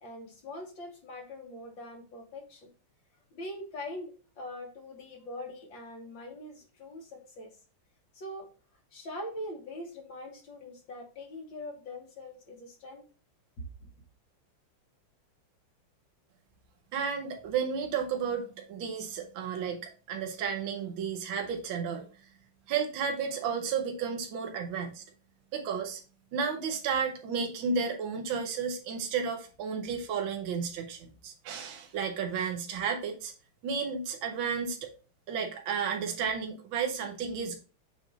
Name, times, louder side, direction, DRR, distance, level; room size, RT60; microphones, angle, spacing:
voice 1, 0.0-2.7 3.3-7.5 8.1-8.5 8.9-13.0 13.6-13.9, left 1 dB, 65° left, 1 dB, 2.2 m, -42 dB
voice 2, 16.9-19.8 20.1-22.1 22.7-25.0 25.5-26.0 26.3-33.3 33.6-34.9 35.3-37.6, right 6 dB, 75° right, 3 dB, 1.7 m, -32 dB
7.5 x 2.6 x 5.0 m, 0.36 s
omnidirectional pair, 2.3 m